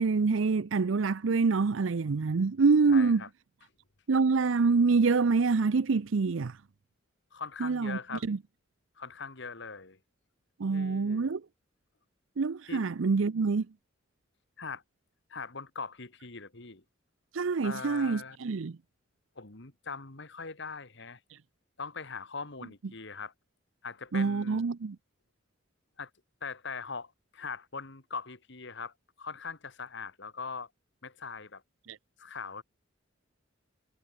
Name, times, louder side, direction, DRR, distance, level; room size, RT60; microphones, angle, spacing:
voice 1, 0.0-3.2 4.1-6.6 7.6-8.4 10.6-11.4 12.4-13.7 17.3-18.8 24.1-25.0 31.9-32.0, right 4 dB, 75° right, 0.6 m, -26 dB
voice 2, 2.9-3.3 7.3-8.2 9.0-10.0 10.7-11.3 12.7-12.9 14.6-14.8 15.3-16.8 17.6-18.4 19.4-21.2 21.8-23.3 23.8-24.7 26.0-26.1 26.4-30.7 31.0-31.6 32.2-32.6, left 5 dB, 65° left, 2.3 m, -41 dB
head